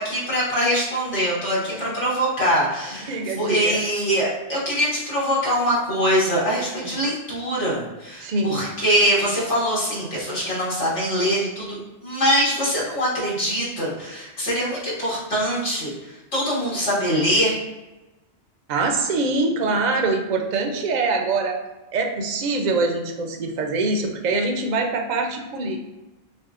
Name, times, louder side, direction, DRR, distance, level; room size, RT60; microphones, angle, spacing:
voice 1, 0.0-17.6, equal, 90° left, -7 dB, 1.7 m, -23 dB
voice 2, 3.1-3.8 6.8-6.9 8.2-8.7 18.7-21.6 21.9-25.8, right 3 dB, 55° right, 3 dB, 0.5 m, -24 dB
6.0 x 2.2 x 2.4 m, 1.1 s
omnidirectional pair, 1.2 m